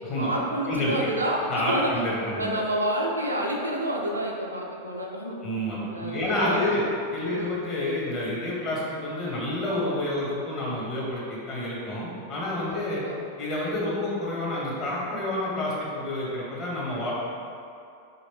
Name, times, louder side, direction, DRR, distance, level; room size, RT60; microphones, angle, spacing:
voice 1, 0.2-1.9 2.4-5.4 5.9-6.9 7.2-7.6 12.7-13.2, right 1 dB, 80° right, -1 dB, 0.4 m, -29 dB
voice 2, 1.5-2.5 5.4-6.8 7.1-13.0 13.4-17.1, left 1 dB, 30° left, -6 dB, 0.9 m, -29 dB
3.0 x 2.8 x 3.0 m, 2.5 s
figure-of-eight pair, 90°, 0 cm